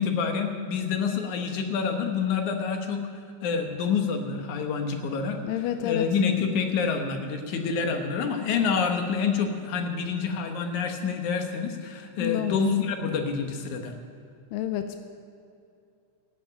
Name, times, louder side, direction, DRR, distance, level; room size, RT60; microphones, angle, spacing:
voice 1, 0.0-3.0 3.4-5.4 5.8-13.9, left 6 dB, 70° left, 4 dB, 2.5 m, -27 dB
voice 2, 5.4-6.2 12.2-12.6 14.5-15.0, left 11 dB, 90° left, 7 dB, 2.3 m, -29 dB
14.0 x 8.6 x 9.0 m, 2.5 s
omnidirectional pair, 3.8 m